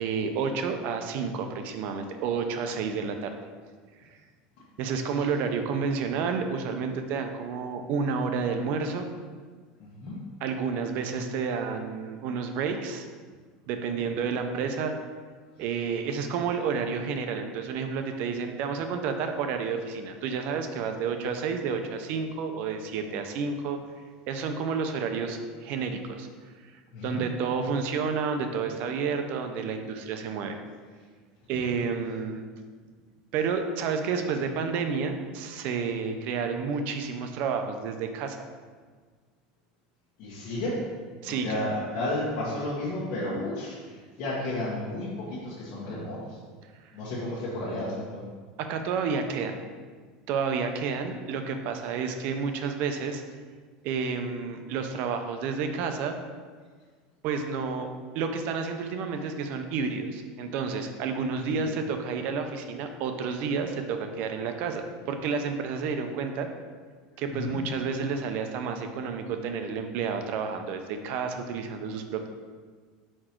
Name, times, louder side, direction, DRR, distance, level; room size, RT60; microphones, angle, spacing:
voice 1, 0.0-3.4 4.8-9.1 10.4-13.0 13.7-14.9 15.6-23.8 24.3-26.3 26.7-30.6 31.5-32.4 33.3-38.4 41.2-41.6 48.6-49.6 50.3-53.2 53.8-56.2 57.2-57.9 58.1-66.5 67.2-72.3, right 5 dB, 55° right, 6 dB, 0.6 m, -30 dB
voice 2, 9.8-10.2 26.9-27.2 40.2-40.8 41.2-46.4 46.9-48.2 61.5-61.7 67.3-67.6, left 1 dB, 55° left, -8 dB, 1.3 m, -32 dB
4.8 x 4.4 x 4.4 m, 1.5 s
supercardioid pair, 145°, 3 cm